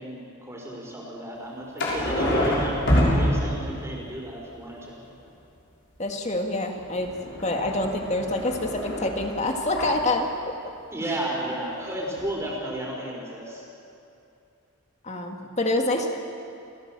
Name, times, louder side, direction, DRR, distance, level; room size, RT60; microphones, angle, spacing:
voice 1, 0.0-2.8 3.0-5.0 10.9-13.7 16.0-16.1, right 1 dB, 15° right, -2 dB, 5.0 m, -33 dB
sound 1, 1.8-3.9 6.8-10.0 11.9-12.0 12.2-12.3, equal, 60° left, 5.8 m, -26 dB
voice 2, 6.0-10.6 15.0-16.1, left 2 dB, 35° left, 3 dB, 2.1 m, -27 dB
29.0 x 16.0 x 7.6 m, 2.7 s
head